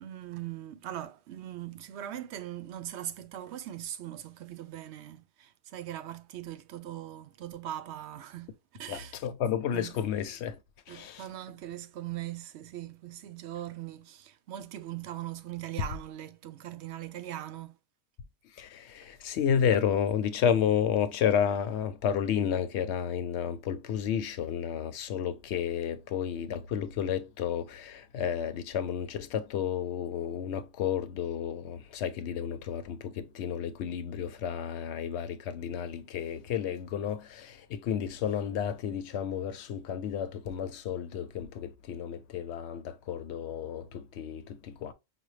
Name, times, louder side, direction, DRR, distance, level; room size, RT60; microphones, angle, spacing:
voice 1, 0.0-9.1 9.7-9.9 10.9-17.8, right 12 dB, 90° right, 0.8 m, -40 dB
voice 2, 8.9-10.6 10.9-11.3 15.8-15.9 18.5-44.9, left 8 dB, 90° left, 0.9 m, -31 dB
5.1 x 2.1 x 3.1 m
omnidirectional pair, 1.1 m